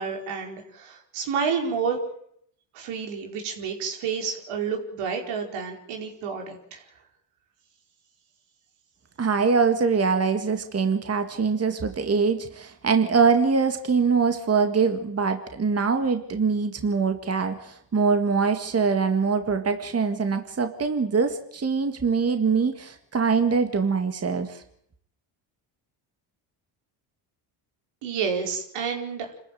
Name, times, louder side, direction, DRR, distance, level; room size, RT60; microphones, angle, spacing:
voice 1, 0.0-2.0 2.7-6.8 28.0-29.3, right 6 dB, 85° right, 2 dB, 4.9 m, -30 dB
voice 2, 9.2-24.6, right 5 dB, 30° right, 7 dB, 2.0 m, -23 dB
26.5 x 14.0 x 9.3 m, 0.70 s
cardioid pair, 85°, 49 cm